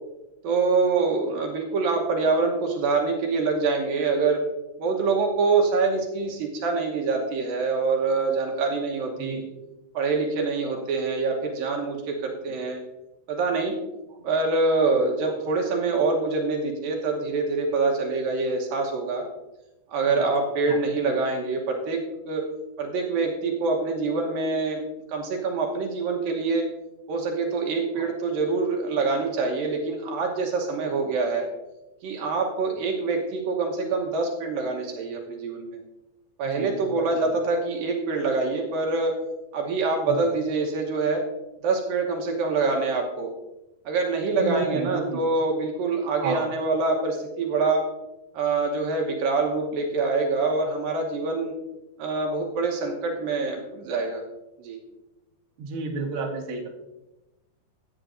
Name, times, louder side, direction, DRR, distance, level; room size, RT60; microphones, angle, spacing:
voice 1, 0.4-4.4 4.8-9.4 9.9-12.8 13.3-13.8 14.2-19.2 19.9-22.5 22.8-24.8 25.1-26.7 27.1-31.5 32.0-35.8 36.4-39.1 39.5-41.2 41.6-43.3 43.9-47.9 48.3-51.5 52.0-54.2 54.6-54.8, right 3 dB, 70° right, 1 dB, 2.6 m, -25 dB
voice 2, 36.4-37.3 40.1-40.3 44.3-45.2 46.2-46.4 55.6-56.7, right 4 dB, 50° right, -1 dB, 1.7 m, -32 dB
15.0 x 8.8 x 2.6 m, 0.99 s
omnidirectional pair, 4.6 m